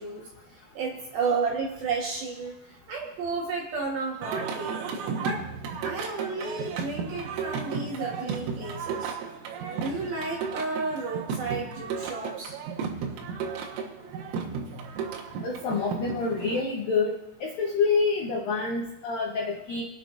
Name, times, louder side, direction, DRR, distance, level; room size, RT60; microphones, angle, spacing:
voice 1, 0.0-4.8 5.2-5.5 5.8-9.2 9.7-12.6, right 4 dB, 65° right, -2 dB, 2.5 m, -32 dB
Singing, 4.2-16.6, right 6 dB, 80° right, 3.9 m, -34 dB
voice 2, 15.4-17.1 17.4-19.9, left 4 dB, 90° left, -1 dB, 1.9 m, -27 dB
27.5 x 9.7 x 2.6 m, 0.86 s
omnidirectional pair, 5.9 m